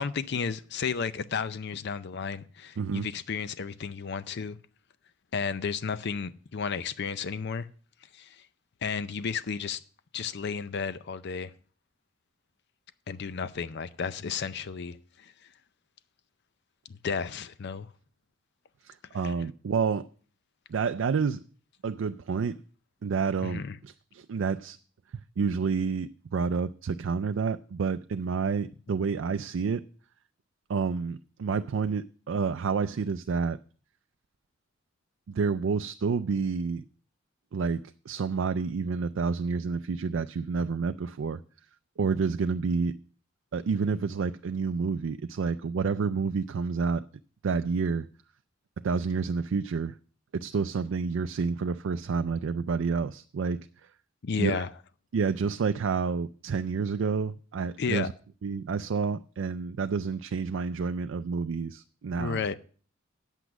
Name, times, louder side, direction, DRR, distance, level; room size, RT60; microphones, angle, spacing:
voice 1, 0.0-4.6 5.3-7.7 8.1-8.4 8.8-9.8 10.1-11.5 13.1-15.3 16.9-17.9 19.1-19.3 23.4-23.8 54.2-54.7 57.8-58.1 62.2-62.5, left 5 dB, 55° left, 0.5 m, -33 dB
voice 2, 2.8-3.1 18.8-20.1 20.7-21.4 21.8-22.6 23.0-24.8 25.1-29.8 30.7-33.6 35.3-36.8 37.5-41.4 42.0-42.9 43.5-47.1 47.4-48.1 48.8-49.9 50.3-53.7 54.4-54.6 55.1-58.1 58.4-62.4, right 5 dB, 70° right, 0.4 m, -29 dB
9.0 x 8.2 x 6.0 m
head